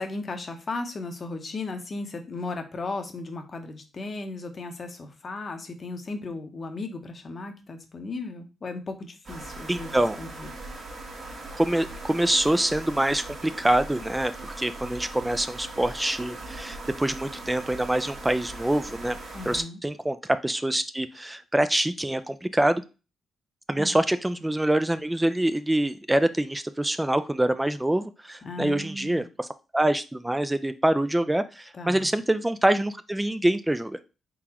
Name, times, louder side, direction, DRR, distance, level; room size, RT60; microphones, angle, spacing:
voice 1, 0.0-10.5 19.3-19.8 23.8-23.9 28.4-29.3 31.7-32.1, left 3 dB, 45° left, 6 dB, 0.8 m, -36 dB
sound 1, 9.2-19.6, right 2 dB, 55° right, 1.5 m, -40 dB
voice 2, 9.7-10.2 11.5-19.2 19.5-20.2 20.4-22.8 23.7-29.5 29.7-34.0, right 1 dB, 10° right, 11 dB, 0.3 m, -25 dB
3.8 x 3.7 x 2.9 m, 0.31 s
cardioid pair, 75°, 0 cm